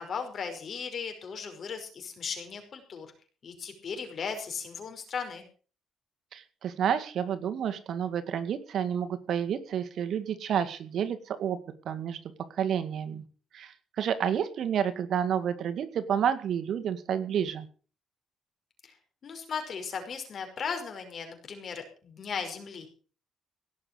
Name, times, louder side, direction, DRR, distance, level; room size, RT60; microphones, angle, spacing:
voice 1, 0.0-3.1 3.4-5.4 18.8-18.9 19.2-22.9, left 6 dB, 55° left, 5 dB, 5.7 m, -37 dB
voice 2, 6.3-11.6 11.9-12.2 12.5-13.2 13.5-17.7, right 8 dB, 65° right, 10 dB, 2.0 m, -30 dB
17.5 x 7.2 x 7.9 m, 0.40 s
cardioid pair, 90°, 0 cm